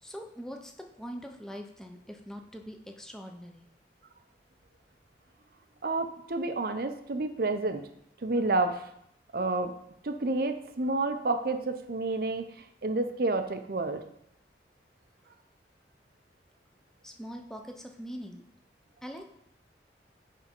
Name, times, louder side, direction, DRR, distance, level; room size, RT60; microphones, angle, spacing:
voice 1, 0.0-3.7 17.0-18.4 19.0-19.3, equal, 5° left, 3 dB, 0.6 m, -42 dB
voice 2, 5.8-7.9 8.2-8.8 9.3-9.7 10.0-12.4 12.8-14.0, right 2 dB, 55° right, 8 dB, 0.6 m, -29 dB
9.6 x 3.5 x 4.4 m, 0.73 s
head